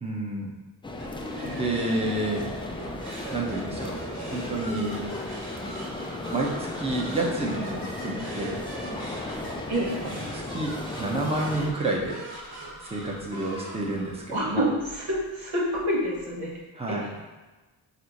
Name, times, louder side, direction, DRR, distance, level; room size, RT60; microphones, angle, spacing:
voice 1, 0.0-0.5 1.4-2.5 3.3-4.0 4.3-5.1 6.3-8.6 10.0-12.2 12.6-14.7 16.7-17.2, right 2 dB, 10° right, -2 dB, 0.8 m, -30 dB
sound 1, 0.8-11.7, left 2 dB, 10° left, 0.3 m, -35 dB
sound 2, 1.0-16.6, right 2 dB, 50° right, 1.5 m, -42 dB
voice 2, 14.3-14.6 14.9-16.5 16.9-17.0, equal, 75° right, -4 dB, 1.2 m, -27 dB
4.4 x 2.1 x 3.9 m, 1.2 s
supercardioid pair, 40°, 50 cm